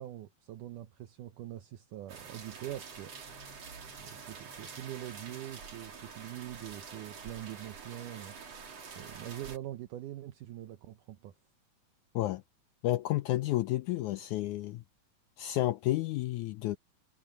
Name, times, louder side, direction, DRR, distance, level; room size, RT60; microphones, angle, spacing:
voice 1, 0.0-3.2 4.0-8.3 8.9-11.3, right 13 dB, 70° right, 2.3 m, -43 dB
sound 1, 2.1-9.6, right 5 dB, 45° right, 3.9 m, -47 dB
voice 2, 12.8-14.8 15.4-16.8, left 15 dB, 90° left, 1.7 m, -31 dB
omnidirectional pair, 4.1 m